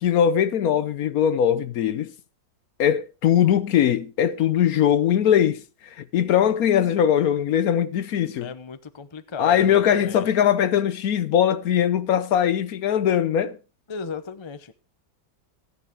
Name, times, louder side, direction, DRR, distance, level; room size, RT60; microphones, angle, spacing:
voice 1, 0.0-2.1 2.8-5.6 6.1-8.5 9.4-13.6, left 9 dB, 65° left, 1.1 m, -20 dB
voice 2, 8.4-10.3 13.9-14.7, left 5 dB, 35° left, 0.4 m, -36 dB
14.0 x 11.0 x 3.6 m
omnidirectional pair, 1.8 m